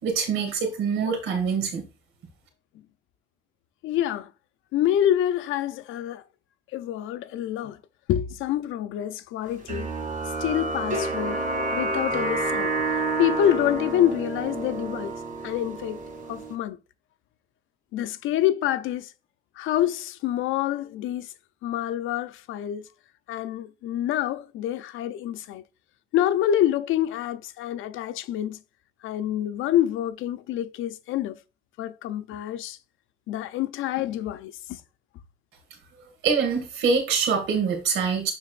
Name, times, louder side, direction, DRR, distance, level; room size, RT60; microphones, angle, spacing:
voice 1, 0.0-1.8 36.2-38.3, right 5 dB, 85° right, 2.3 m, -24 dB
voice 2, 3.8-4.3 4.7-6.2 6.7-7.8 8.1-9.9 10.4-11.4 11.7-12.7 13.2-15.1 15.4-16.0 16.3-16.8 17.9-19.1 19.6-21.3 21.6-22.9 23.3-25.6 26.1-28.6 29.0-31.4 31.8-32.8 33.3-34.8, left 11 dB, 90° left, 0.6 m, -27 dB
sound 1, 9.7-16.5, right 2 dB, 40° right, 2.7 m, -29 dB
12.0 x 4.1 x 2.5 m
cardioid pair, 90°, 20 cm